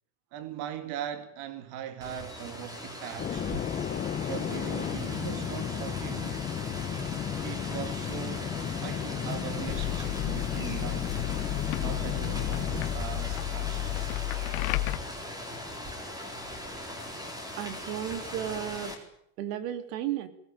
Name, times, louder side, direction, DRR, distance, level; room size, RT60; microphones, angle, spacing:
voice 1, 0.3-3.5 4.2-6.4 7.4-8.5 8.8-11.2 11.8-14.1, right 10 dB, 50° right, 2.4 m, -40 dB
Rain, 2.0-19.0, left 1 dB, 10° right, 4.1 m, -39 dB
sound 1, 3.2-14.2, left 9 dB, 20° left, 0.9 m, -34 dB
sound 2, 9.7-15.0, left 21 dB, 65° left, 2.1 m, -33 dB
voice 2, 17.6-18.9 19.4-20.3, right 11 dB, 80° right, 3.4 m, -33 dB
23.0 x 18.0 x 9.1 m
cardioid pair, 180°, 47 cm